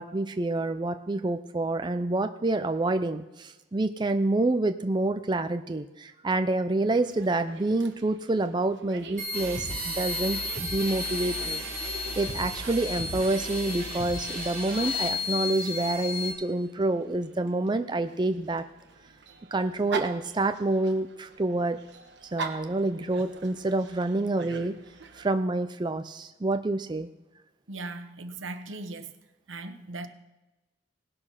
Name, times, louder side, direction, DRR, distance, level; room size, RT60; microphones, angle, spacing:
voice 1, 0.0-18.6 19.5-21.8 22.3-24.7 25.1-27.1, right 2 dB, 25° right, 0.5 m, -28 dB
Dog, 6.9-25.3, right 5 dB, 65° right, 1.3 m, -44 dB
sound 1, 9.2-16.3, left 3 dB, 45° right, 3.4 m, -34 dB
sound 2, 9.3-15.1, equal, 5° left, 5.4 m, -38 dB
voice 2, 27.7-29.2 29.5-30.1, right 2 dB, 80° right, 1.1 m, -38 dB
18.5 x 6.7 x 5.7 m
head